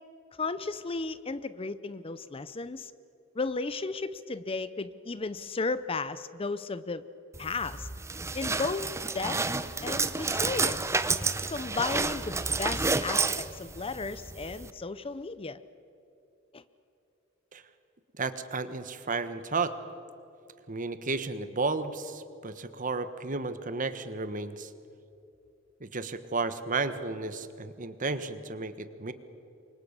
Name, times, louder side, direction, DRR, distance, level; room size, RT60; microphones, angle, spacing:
voice 1, 0.4-2.9 3.3-7.0 7.4-7.9 8.3-8.9 9.1-9.4 9.8-10.8 11.5-15.6 16.5-16.6, left 3 dB, 30° left, 14 dB, 0.6 m, -34 dB
sound 1, 7.3-14.7, right 3 dB, 15° right, 0.8 m, -30 dB
voice 2, 18.1-19.7 20.7-24.7 25.8-29.1, right 3 dB, 40° right, 11 dB, 1.3 m, -33 dB
28.5 x 24.5 x 6.7 m, 2.7 s
head